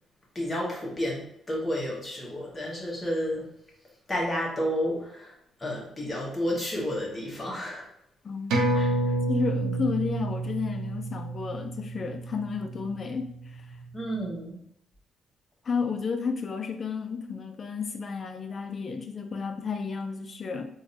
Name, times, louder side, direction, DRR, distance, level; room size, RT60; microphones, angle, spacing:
voice 1, 0.3-3.4 4.1-5.3 5.6-7.9 8.7-8.9 9.6-9.8 13.9-14.6, equal, 20° left, -3 dB, 1.3 m, -31 dB
voice 2, 8.2-8.6 9.3-13.6 15.7-20.7, left 5 dB, 40° left, 7 dB, 0.5 m, -32 dB
sound 1, 8.5-13.4 13.8-13.9, right 2 dB, 90° right, 0.6 m, -29 dB
3.8 x 2.6 x 2.6 m, 0.74 s
cardioid pair, 90°, 0 cm